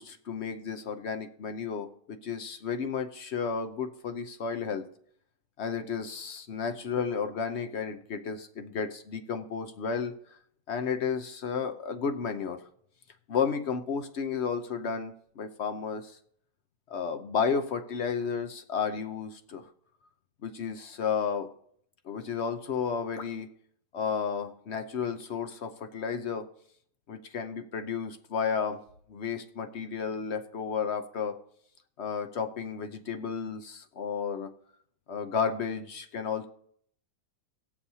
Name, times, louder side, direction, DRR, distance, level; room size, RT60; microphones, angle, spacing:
voice 1, 0.0-4.9 5.6-10.2 10.7-12.6 13.3-16.2 16.9-19.7 20.4-21.5 22.0-23.5 23.9-26.5 27.1-28.8 29.1-31.4 32.0-34.5 35.1-36.5, left 6 dB, 60° left, 8 dB, 0.7 m, -32 dB
19.0 x 7.2 x 2.7 m, 0.65 s
omnidirectional pair, 1.9 m